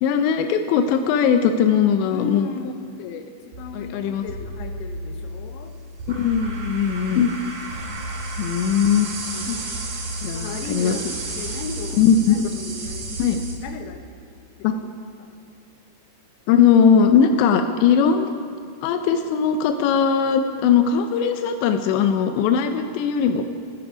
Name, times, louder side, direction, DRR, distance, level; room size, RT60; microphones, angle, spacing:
voice 1, 0.0-2.5 3.0-3.3 3.7-4.2 6.2-7.3 8.4-9.1 9.3-9.6 10.2-11.0 12.0-12.5 13.2-13.4 14.6-14.7 16.5-18.3 18.8-23.5, left 7 dB, 85° left, 7 dB, 2.5 m, -19 dB
voice 2, 2.1-2.7 3.2-5.7 7.8-8.0 9.5-9.9 10.3-12.0 12.3-14.0 14.7-14.9 15.2-15.3 22.7-22.9, left 5 dB, 70° left, 5 dB, 2.7 m, -36 dB
sound 1, 3.5-13.6, right 1 dB, 50° right, 3.3 m, -32 dB
28.0 x 9.7 x 5.0 m, 2.2 s
omnidirectional pair, 5.9 m